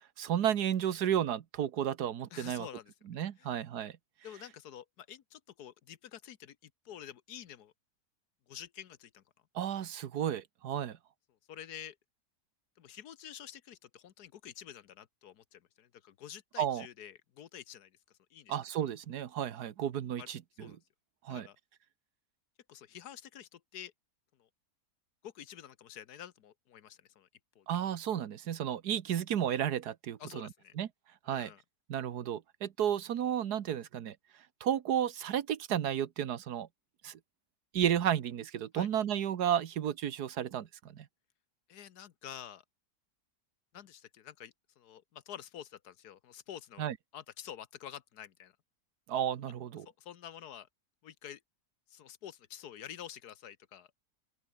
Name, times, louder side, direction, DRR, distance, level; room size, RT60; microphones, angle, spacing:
voice 1, 0.2-2.7 3.1-4.0 9.5-11.0 16.6-16.9 18.5-20.8 21.2-21.5 27.7-30.5 30.7-30.9 31.3-31.5 31.9-34.1 34.6-36.7 37.0-37.2 37.7-41.1 46.8-47.0 49.1-49.9, right 10 dB, 90° right, 1.6 m, -33 dB
voice 2, 2.3-2.9 3.4-3.5 4.2-7.7 8.5-9.2 11.5-11.9 12.8-17.9 18.3-18.6 20.2-20.3 20.6-20.8 21.3-21.6 22.7-23.9 24.4-24.5 25.2-27.3 27.5-27.7 30.2-30.7 31.3-31.6 38.7-38.9 41.7-42.6 43.7-48.5 50.0-50.7 51.0-51.4 51.9-53.9, left 10 dB, 90° left, 1.6 m, -48 dB
omnidirectional pair, 1.6 m